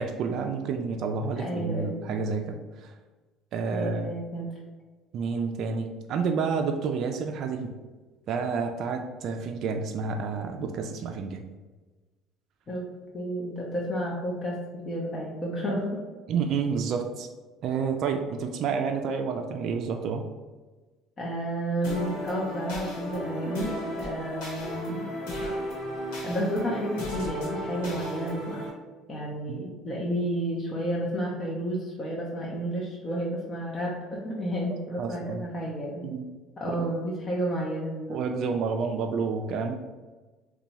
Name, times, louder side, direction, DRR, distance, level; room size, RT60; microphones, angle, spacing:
voice 1, 0.0-2.9 3.5-4.1 5.1-7.7 8.3-11.4 16.3-17.3 17.6-20.2 23.5-23.6 29.5-29.7 35.0-35.4 36.0-36.2 36.6-36.9 38.1-39.8, right 5 dB, 60° right, 4 dB, 0.3 m, -29 dB
voice 2, 1.4-1.9 3.7-4.5 12.7-12.9 13.1-16.0 21.2-25.1 26.2-28.7 29.1-36.1 36.6-38.2, equal, 35° left, -4 dB, 0.6 m, -31 dB
sound 1, 21.8-28.7, equal, 90° left, 1.1 m, -34 dB
2.8 x 2.2 x 4.1 m, 1.3 s
supercardioid pair, 105°, 0 cm